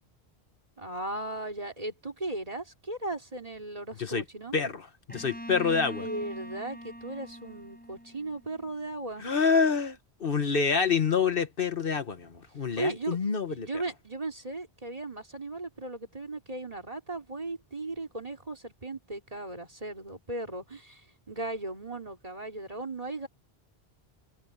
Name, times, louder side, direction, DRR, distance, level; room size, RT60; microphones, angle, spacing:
voice 1, 0.8-4.6 5.8-9.2 12.8-13.2 13.5-21.0 21.3-23.3, right 2 dB, 35° right, 3.4 m, -37 dB
voice 2, 4.5-6.1 9.2-13.7, left 5 dB, 60° left, 1.4 m, -27 dB
Bowed string instrument, 5.1-8.8, equal, 10° left, 7.1 m, -43 dB
omnidirectional pair, 1.0 m